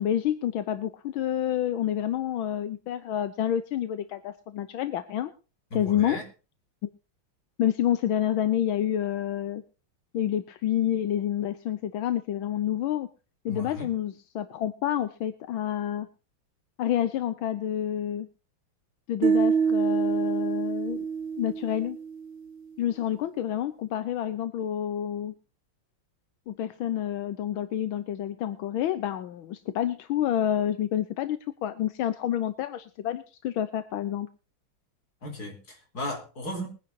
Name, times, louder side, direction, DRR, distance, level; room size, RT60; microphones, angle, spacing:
voice 1, 0.0-5.3 5.7-6.2 6.8-6.9 7.6-9.6 10.1-13.1 13.4-16.1 16.8-18.3 19.1-21.0 21.4-22.0 22.8-25.3 26.5-34.3, left 11 dB, 80° left, 11 dB, 1.6 m, -28 dB
voice 2, 5.7-6.2 13.5-13.9 35.2-36.7, left 1 dB, 50° left, 3 dB, 4.5 m, -35 dB
sound 1, 19.2-22.4, right 6 dB, 75° right, 1.9 m, -26 dB
22.0 x 10.5 x 2.8 m, 0.34 s
omnidirectional pair, 2.2 m